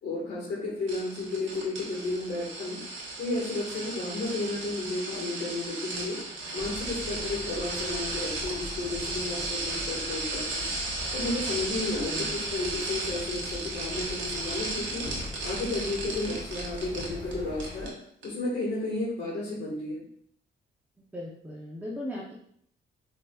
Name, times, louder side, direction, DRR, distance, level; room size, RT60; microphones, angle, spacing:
voice 1, 0.0-2.8 3.2-6.2 6.5-10.7 11.1-15.1 15.4-17.9 18.2-20.0, left 2 dB, 60° left, -6 dB, 1.6 m, -32 dB
sound 1, 0.9-17.3 17.6-17.9 18.2-18.3, right 2 dB, 80° right, 1.1 m, -35 dB
sound 2, 6.6-17.9, left 2 dB, 25° left, 1.6 m, -42 dB
voice 2, 21.1-22.3, left 1 dB, 10° right, -5 dB, 0.7 m, -37 dB
5.1 x 2.9 x 2.3 m, 0.66 s
cardioid pair, 90°, 20 cm